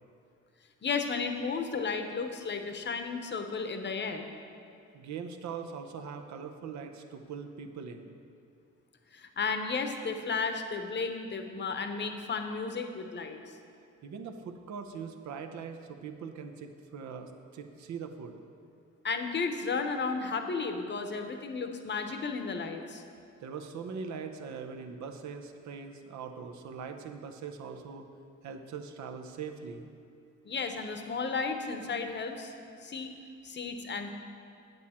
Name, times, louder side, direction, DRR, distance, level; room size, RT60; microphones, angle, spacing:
voice 1, 0.8-4.3 9.1-13.6 19.0-23.0 30.4-32.5 32.8-33.1 33.4-34.1, left 4 dB, 35° left, 6 dB, 0.9 m, -33 dB
voice 2, 4.9-8.1 14.0-18.4 23.4-28.1 28.4-29.9, right 6 dB, 65° right, 5 dB, 0.8 m, -41 dB
8.6 x 8.0 x 4.3 m, 2.4 s
cardioid pair, 90°, 30 cm